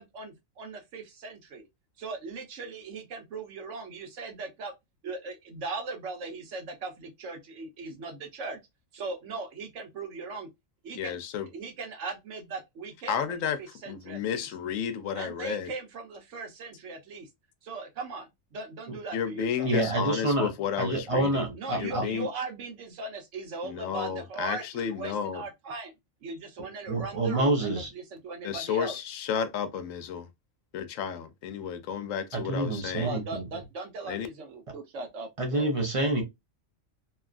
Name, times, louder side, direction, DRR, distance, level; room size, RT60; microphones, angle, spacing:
voice 1, 0.0-1.7 2.0-4.7 5.0-8.6 8.9-10.5 10.8-11.1 11.5-14.5 15.1-17.3 17.6-19.7 21.5-25.9 26.2-29.0 33.0-35.7, right 3 dB, 70° right, 1.1 m, -39 dB
voice 2, 10.9-11.5 13.1-13.6 13.9-15.7 19.1-21.4 21.7-22.3 23.6-25.4 28.4-30.3 30.7-33.1 34.1-34.3, left 8 dB, 85° left, 1.0 m, -32 dB
voice 3, 19.6-20.5 20.8-22.0 26.9-27.9 32.3-33.4 35.4-36.2, right 2 dB, 35° right, 0.7 m, -27 dB
2.9 x 2.4 x 2.4 m
omnidirectional pair, 1.3 m